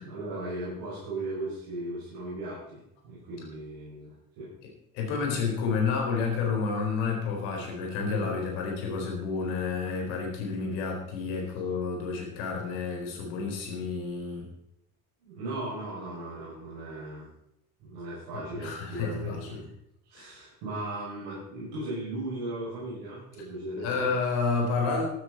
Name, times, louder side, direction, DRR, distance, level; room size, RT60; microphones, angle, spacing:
voice 1, 0.0-4.5 8.0-8.3 15.2-17.3 17.8-19.6 20.1-24.1, right 2 dB, 60° right, -9 dB, 6.5 m, -37 dB
voice 2, 4.6-14.5 18.3-19.6 20.1-20.3 23.8-25.0, left 5 dB, 65° left, 1 dB, 4.3 m, -30 dB
14.5 x 12.5 x 4.2 m, 0.81 s
figure-of-eight pair, 55°, 45 cm